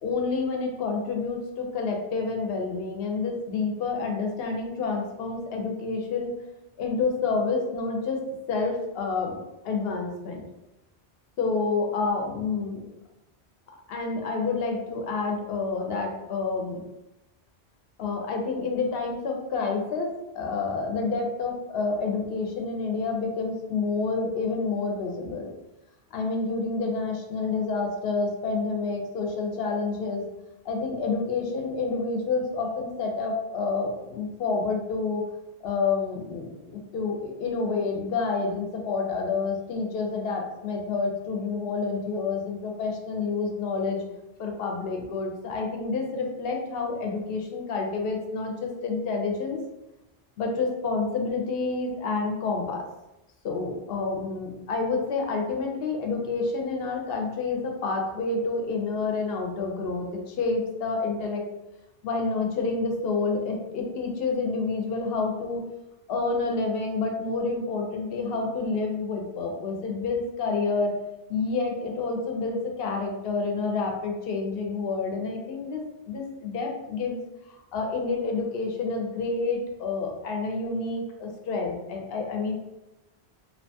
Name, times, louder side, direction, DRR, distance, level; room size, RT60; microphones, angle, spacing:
voice 1, 0.0-6.3 6.8-9.3 9.6-10.4 11.4-12.8 13.9-16.8 18.0-25.5 26.1-30.2 30.6-35.2 35.6-44.0 44.4-49.6 50.4-52.8 53.4-61.4 62.0-65.6 66.1-71.0 71.3-77.2 77.7-82.5, left 4 dB, 70° left, 2 dB, 0.8 m, -28 dB
2.7 x 2.2 x 2.6 m, 0.93 s
omnidirectional pair, 1.1 m